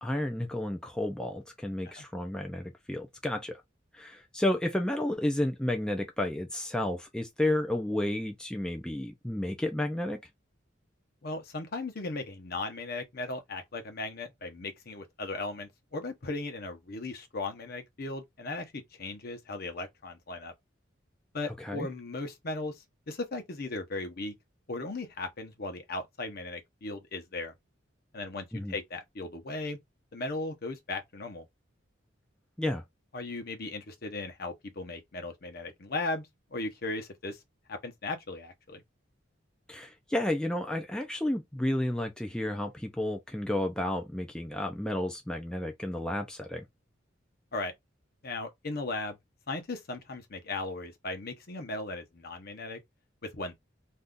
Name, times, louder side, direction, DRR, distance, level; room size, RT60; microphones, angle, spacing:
voice 1, 0.0-3.6 3.9-10.2 21.6-21.9 28.5-28.7 32.6-32.8 39.7-46.7, left 1 dB, 5° left, 0.4 m, -31 dB
voice 2, 11.2-20.5 21.3-24.3 24.7-27.5 28.1-29.8 30.1-31.5 33.1-37.4 37.7-38.8 47.5-47.7 48.2-49.2 49.5-52.8 53.2-53.5, left 2 dB, 50° left, 0.8 m, -37 dB
2.6 x 2.3 x 3.5 m
head